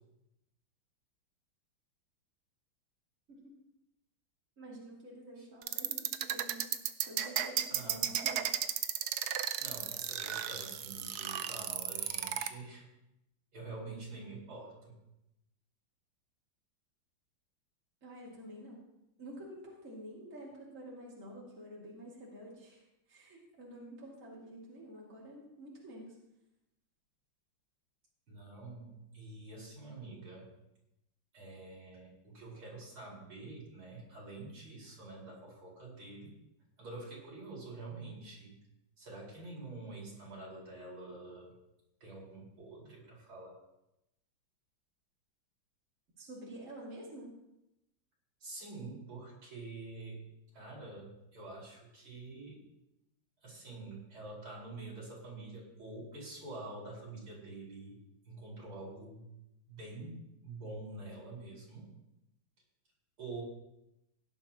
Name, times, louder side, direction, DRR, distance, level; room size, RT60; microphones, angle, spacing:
voice 1, 4.6-6.7 7.1-8.6 18.0-18.8 19.2-26.2 46.2-47.3, right 1 dB, 40° right, -4 dB, 2.9 m, -49 dB
sound 1, 5.6-12.5, right 10 dB, 65° right, 1.0 m, -34 dB
voice 2, 7.7-8.1 9.6-12.8 13.5-14.9 28.3-30.5 31.3-36.3 36.8-38.5 39.0-41.5 42.0-43.5 48.4-50.2 50.5-52.6 53.4-58.0 58.3-59.2 59.7-60.1 60.4-61.8 63.2-63.4, right 2 dB, 85° right, -4 dB, 5.6 m, -47 dB
17.0 x 11.0 x 3.0 m, 0.87 s
omnidirectional pair, 2.3 m